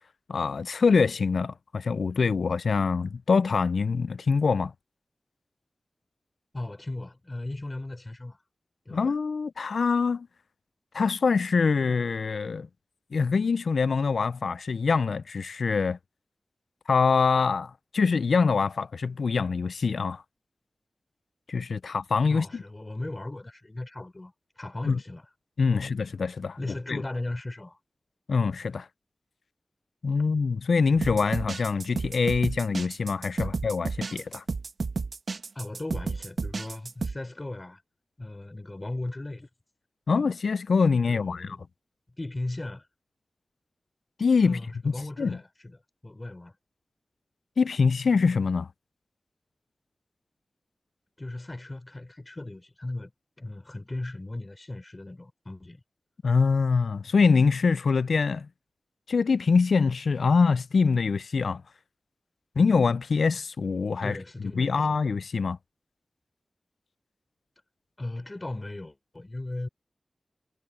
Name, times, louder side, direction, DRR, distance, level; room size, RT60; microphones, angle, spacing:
voice 1, 0.3-4.7 8.9-10.3 10.9-12.7 13.1-16.0 16.9-20.2 21.5-22.6 24.8-25.0 25.6-26.6 26.9-27.0 28.3-28.9 30.0-34.4 40.1-41.6 44.2-44.6 44.8-45.4 47.6-48.7 56.2-58.5 59.1-61.6 62.6-64.2 64.6-65.6, left 5 dB, 85° left, 0.3 m, -24 dB
voice 2, 6.5-8.4 8.9-9.1 22.3-25.3 25.7-25.9 26.6-27.8 35.6-37.8 38.2-39.5 40.1-40.2 41.1-41.6 42.2-42.9 44.4-45.8 46.0-46.6 51.2-53.1 53.4-55.8 64.0-65.0 68.0-69.7, left 2 dB, 35° left, 3.7 m, -37 dB
sound 1, 31.0-37.2, right 4 dB, 75° right, 1.1 m, -32 dB
cardioid pair, 45°, 0 cm